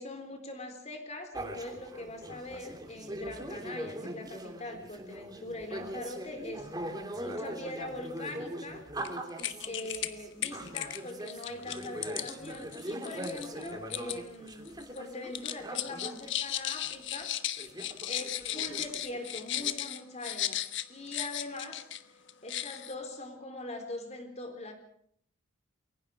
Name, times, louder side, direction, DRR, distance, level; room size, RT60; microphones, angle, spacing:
voice 1, 0.0-6.7 7.2-8.9 9.7-17.3 18.1-20.6 20.9-24.7, left 2 dB, 35° left, 6 dB, 3.7 m, -42 dB
sound 1, 1.3-16.3 16.8-16.9 17.1-19.8, right 1 dB, 20° right, 3.1 m, -41 dB
sound 2, 9.0-9.1 9.4-10.1 10.4-14.2 14.5-15.0 15.3-22.0 22.3-22.9, left 12 dB, 60° left, 1.3 m, -36 dB
29.0 x 22.5 x 4.9 m, 0.66 s
head